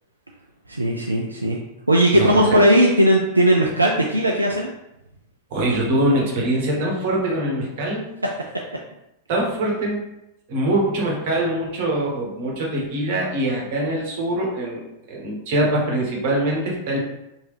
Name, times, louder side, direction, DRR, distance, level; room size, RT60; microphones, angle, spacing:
voice 1, 0.7-1.6 1.9-4.7, equal, 80° right, 0 dB, 0.3 m, -17 dB
voice 2, 2.1-2.6 5.5-8.1 9.3-10.0 10.5-17.0, right 1 dB, 50° right, -2 dB, 1.0 m, -23 dB
3.1 x 2.6 x 3.2 m, 0.88 s
figure-of-eight pair, 90°, 0 cm